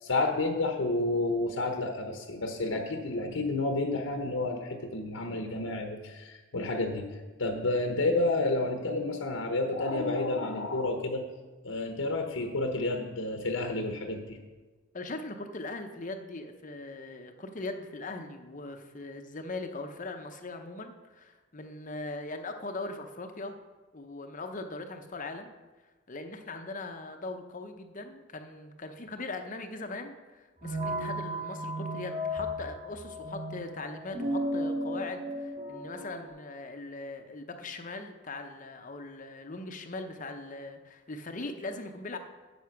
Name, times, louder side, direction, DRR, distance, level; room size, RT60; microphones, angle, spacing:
voice 1, 0.0-7.1 7.4-11.2 11.6-14.4, left 2 dB, 70° left, 4 dB, 1.0 m, -30 dB
voice 2, 14.9-23.6 23.9-25.5 26.1-42.2, left 2 dB, 40° left, 6 dB, 0.8 m, -40 dB
sound 1, 30.6-36.3, equal, 40° right, 3.5 m, -34 dB
9.5 x 7.2 x 5.9 m, 1.3 s
head